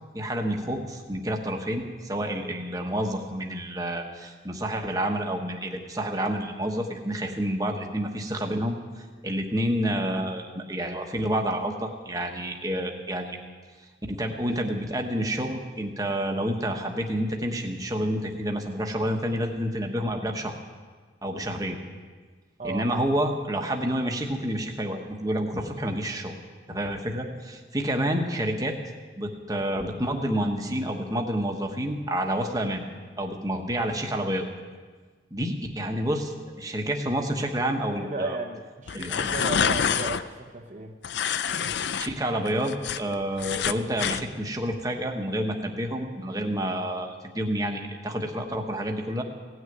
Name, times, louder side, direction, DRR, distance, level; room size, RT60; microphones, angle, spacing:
voice 1, 0.1-13.4 14.1-20.6 21.2-21.8 22.6-26.3 26.7-28.8 29.2-32.8 33.2-34.5 35.3-38.4 38.9-39.3 42.0-49.2, equal, 20° right, 2 dB, 1.1 m, -29 dB
voice 2, 38.0-40.9, right 3 dB, 40° right, 1 dB, 0.7 m, -34 dB
Bedroom Ripping Paper Close Persp, 38.9-40.2 41.0-42.1 42.5-44.2, left 7 dB, 65° left, 0.4 m, -27 dB
17.0 x 6.5 x 9.1 m, 1.5 s
head